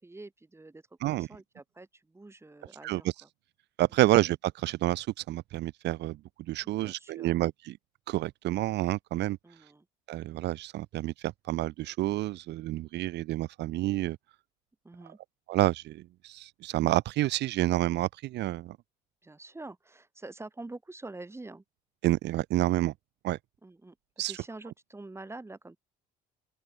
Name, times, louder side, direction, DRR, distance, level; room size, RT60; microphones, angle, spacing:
voice 1, 0.0-3.3 6.6-7.4 9.4-9.9 14.8-15.2 19.2-21.6 23.6-25.8, right 2 dB, 15° right, 3.4 m, -46 dB
voice 2, 3.8-6.2 6.5-7.7 8.1-9.4 10.1-14.2 15.5-18.8 22.0-22.9 23.2-23.4 24.2-24.4, right 16 dB, 65° right, 0.8 m, -29 dB
open air
supercardioid pair, 90°, 19 cm